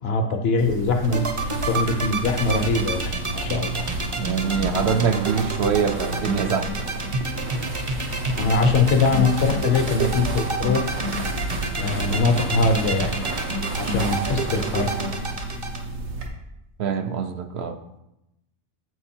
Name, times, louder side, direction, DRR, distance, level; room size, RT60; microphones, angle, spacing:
voice 1, 0.0-1.3 1.7-3.9 8.4-10.9 11.8-13.3 13.8-14.9, left 3 dB, 60° left, 6 dB, 0.8 m, -22 dB
sound 1, 0.6-16.3, right 2 dB, 90° right, 1.3 m, -31 dB
sound 2, 1.0-15.8, right 2 dB, 30° right, 0.6 m, -28 dB
voice 2, 4.1-6.9 16.8-17.8, right 7 dB, 65° right, 7 dB, 0.7 m, -24 dB
8.1 x 4.5 x 4.3 m, 0.87 s
omnidirectional pair, 1.3 m